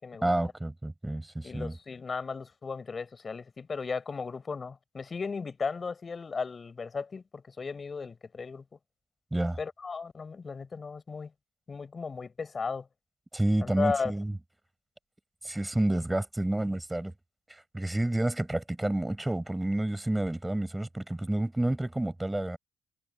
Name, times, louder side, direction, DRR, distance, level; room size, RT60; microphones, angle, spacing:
voice 1, 0.2-1.8 9.3-9.6 13.3-14.4 15.4-17.1 17.5-22.6, right 1 dB, 10° right, 6.1 m, -29 dB
voice 2, 1.4-8.6 9.6-11.3 11.7-12.8 13.6-14.1, left 5 dB, 35° left, 6.7 m, -35 dB
cardioid pair, 90°, 0 cm